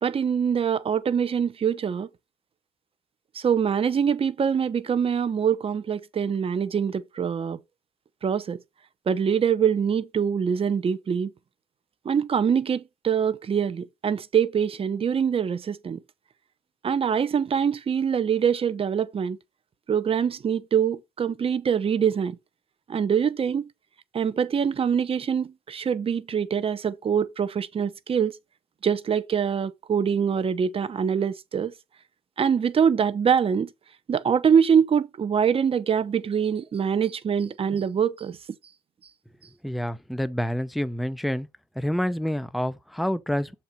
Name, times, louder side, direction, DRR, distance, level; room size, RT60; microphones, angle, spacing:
voice 1, 0.0-2.1 3.3-7.6 8.2-8.6 9.1-11.3 12.0-16.0 16.8-19.4 19.9-22.4 22.9-23.7 24.1-28.4 28.8-31.7 32.4-33.7 34.1-38.4, right 7 dB, 35° right, 0.8 m, -24 dB
voice 2, 39.6-41.5 41.8-43.5, equal, ahead, 0.5 m, -28 dB
7.1 x 4.4 x 5.1 m
cardioid pair, 110°, 17 cm